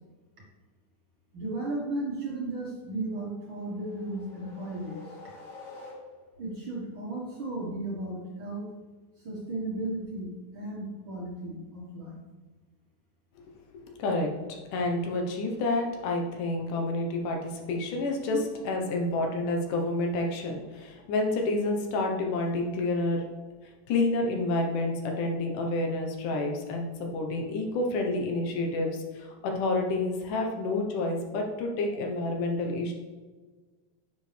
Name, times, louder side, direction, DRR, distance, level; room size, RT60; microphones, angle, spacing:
voice 1, 1.3-5.1 6.4-8.7 9.2-12.2, right 2 dB, 50° right, -4 dB, 1.9 m, -35 dB
sound 1, 3.4-6.5, left 2 dB, 60° left, 3.5 m, -48 dB
voice 2, 13.8-14.3 14.7-18.4 18.7-23.2 23.9-32.9, left 2 dB, 75° left, 2 dB, 2.6 m, -29 dB
10.0 x 6.9 x 3.4 m, 1.4 s
omnidirectional pair, 3.7 m